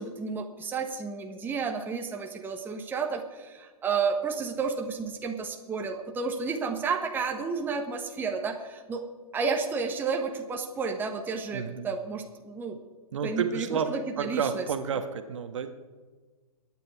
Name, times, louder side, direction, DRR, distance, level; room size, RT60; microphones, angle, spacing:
voice 1, 0.0-9.0 9.3-12.8 13.2-14.6, right 5 dB, 10° right, 3 dB, 1.2 m, -31 dB
voice 2, 11.5-11.9 13.1-15.7, right 6 dB, 55° right, 8 dB, 1.4 m, -31 dB
22.5 x 9.4 x 4.7 m, 1.4 s
figure-of-eight pair, 120°, 19 cm